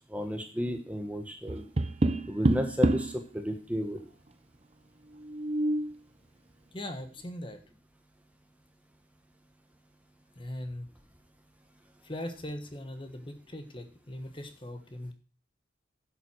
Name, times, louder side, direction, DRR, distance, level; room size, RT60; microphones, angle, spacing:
voice 1, 0.1-1.6 2.3-4.0, equal, 10° right, 5 dB, 1.1 m, -32 dB
Tap, 1.5-3.2 5.2-5.9, right 1 dB, 35° right, 0.7 m, -27 dB
voice 2, 6.7-7.6 10.3-10.9 12.0-15.1, left 1 dB, 25° left, 7 dB, 1.4 m, -40 dB
11.0 x 7.4 x 6.3 m, 0.38 s
head